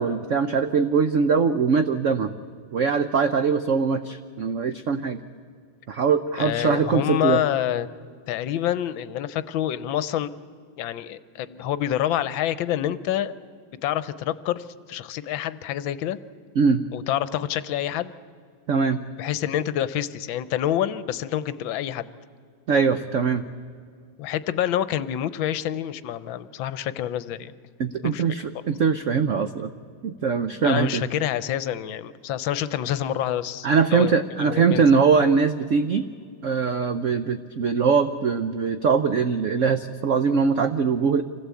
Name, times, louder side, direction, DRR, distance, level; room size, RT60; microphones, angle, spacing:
voice 1, 0.0-2.3 2.7-5.2 5.9-7.4 16.6-16.8 18.7-19.0 22.7-23.4 27.8-29.7 30.0-31.0 33.6-36.1 36.4-41.2, right 5 dB, 85° right, 10 dB, 0.6 m, -22 dB
voice 2, 6.4-7.9 8.3-10.3 10.8-13.3 13.8-16.2 16.9-18.1 19.2-22.1 24.2-27.5 28.0-28.2 28.5-28.6 30.6-33.7 33.9-34.9, left 11 dB, 75° left, 15 dB, 1.4 m, -27 dB
26.0 x 16.0 x 8.4 m, 2.2 s
omnidirectional pair, 2.3 m